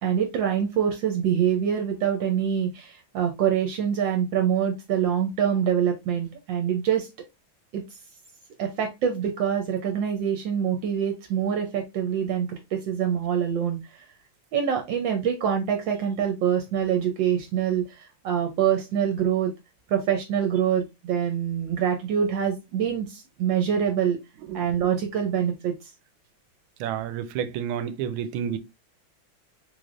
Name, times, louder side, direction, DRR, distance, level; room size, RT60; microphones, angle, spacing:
voice 1, 0.0-7.1 7.7-7.8 8.6-14.0 14.5-19.5 19.9-24.2 24.5-25.9, right 8 dB, 70° right, 1.3 m, -25 dB
voice 2, 26.8-28.6, right 9 dB, 90° right, 1.4 m, -30 dB
3.7 x 3.3 x 2.4 m
omnidirectional pair, 2.2 m